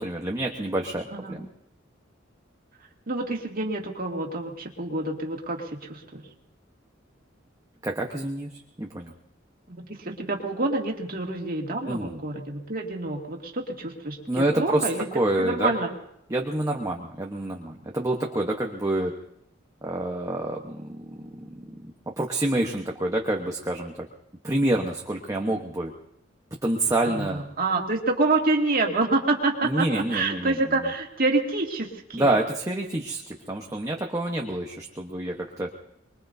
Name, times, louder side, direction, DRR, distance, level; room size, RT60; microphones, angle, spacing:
voice 1, 0.0-1.5 7.8-8.5 8.8-9.1 11.9-12.2 14.3-15.7 16.3-19.1 19.8-21.3 21.8-24.1 24.4-25.9 26.6-27.5 29.6-30.6 32.1-35.7, right 1 dB, 20° right, 0 dB, 1.0 m, -27 dB
voice 2, 3.1-6.3 9.7-15.9 27.0-32.3, right 2 dB, 50° right, 1 dB, 2.2 m, -27 dB
24.5 x 21.5 x 2.7 m, 0.75 s
head